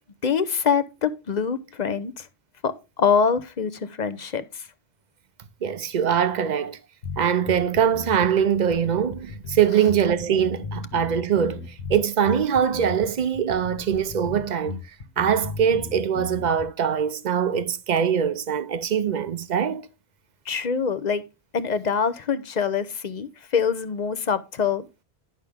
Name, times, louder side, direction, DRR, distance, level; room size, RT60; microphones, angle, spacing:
voice 1, 0.2-2.3 2.6-4.7 20.5-21.2 21.5-23.3 23.5-25.0, left 6 dB, 45° left, 0.8 m, -24 dB
voice 2, 5.6-6.8 7.2-14.8 15.2-19.9, right 8 dB, 50° right, 0.8 m, -23 dB
sound 1, 7.0-16.6, left 4 dB, 90° left, 1.8 m, -36 dB
10.5 x 6.0 x 3.5 m
omnidirectional pair, 1.0 m